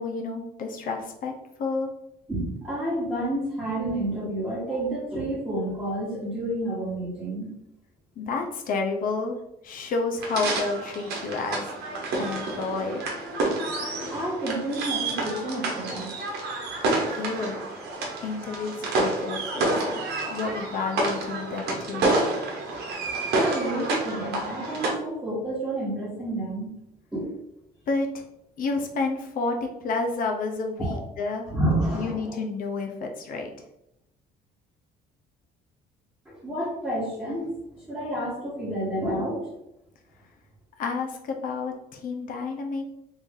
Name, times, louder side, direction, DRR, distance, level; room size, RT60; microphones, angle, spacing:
voice 1, 0.0-1.3 1.6-1.9 8.2-9.4 9.6-11.7 12.2-13.1 17.1-17.6 18.2-20.0 20.3-22.1 27.9-28.2 28.6-31.5 31.9-33.5 40.8-42.8, left 4 dB, 55° left, 3 dB, 0.6 m, -30 dB
voice 2, 2.3-7.5 12.0-12.5 14.1-16.1 23.3-26.7 27.1-27.3 30.8-31.0 31.5-32.4 36.2-39.4, right 1 dB, 5° right, -9 dB, 1.3 m, -30 dB
sound 1, 10.2-24.9, right 2 dB, 75° right, 1.0 m, -29 dB
3.2 x 2.6 x 3.6 m, 0.81 s
cardioid pair, 110°, 17 cm